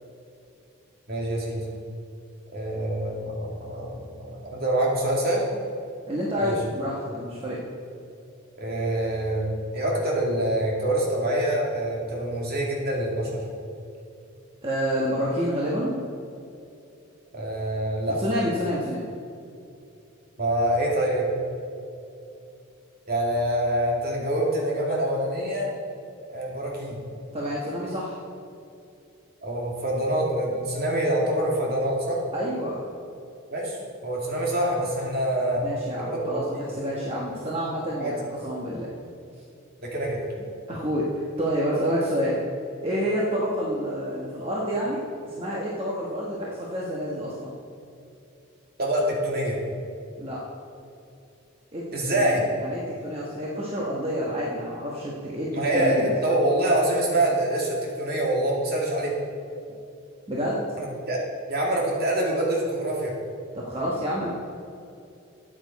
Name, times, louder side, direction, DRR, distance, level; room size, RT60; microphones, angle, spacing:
voice 1, 1.1-1.6 2.5-5.4 6.4-6.5 8.6-13.4 17.3-18.2 20.4-21.3 23.1-25.7 26.3-27.0 29.4-32.2 33.5-35.6 36.0-36.8 38.0-38.1 39.8-40.2 48.8-49.6 51.9-52.4 55.5-59.1 60.8-61.2 61.5-63.1, right 1 dB, 45° right, -2 dB, 2.3 m, -25 dB
voice 2, 6.1-7.6 14.6-16.0 18.2-19.0 27.3-28.2 32.3-32.8 35.6-38.9 40.7-42.4 42.8-47.5 50.2-50.4 51.7-56.1 60.3-60.6 63.5-64.3, equal, 30° right, -5 dB, 1.2 m, -28 dB
13.0 x 8.9 x 4.1 m, 2.6 s
head